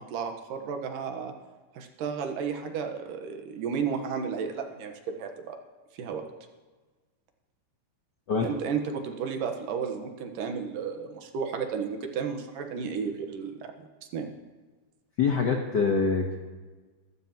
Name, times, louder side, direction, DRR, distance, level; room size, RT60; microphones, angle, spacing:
voice 1, 0.0-1.3 1.7-5.6 5.9-6.2 8.4-13.9 14.1-14.3, right 6 dB, 85° right, 4 dB, 2.8 m, -33 dB
voice 2, 15.2-16.4, left 5 dB, 85° left, 2 dB, 0.9 m, -24 dB
23.5 x 13.0 x 3.0 m, 1.3 s
omnidirectional pair, 3.7 m